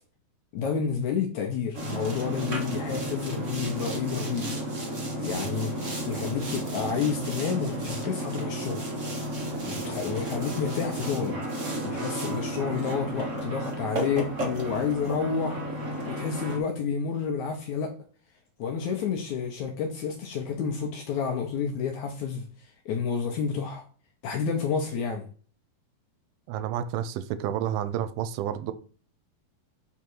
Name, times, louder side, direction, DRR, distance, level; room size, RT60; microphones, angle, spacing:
voice 1, 0.5-4.5 5.2-8.9 9.7-11.4 11.8-15.6 16.1-17.9 18.6-22.5 22.9-23.8 24.2-25.3, left 6 dB, 70° left, 1.9 m, -30 dB
Boat Water vehicle, 1.7-16.6, right 1 dB, 60° right, 0.7 m, -32 dB
voice 2, 26.5-28.7, right 10 dB, 90° right, 2.5 m, -30 dB
8.2 x 3.7 x 4.5 m
omnidirectional pair, 4.3 m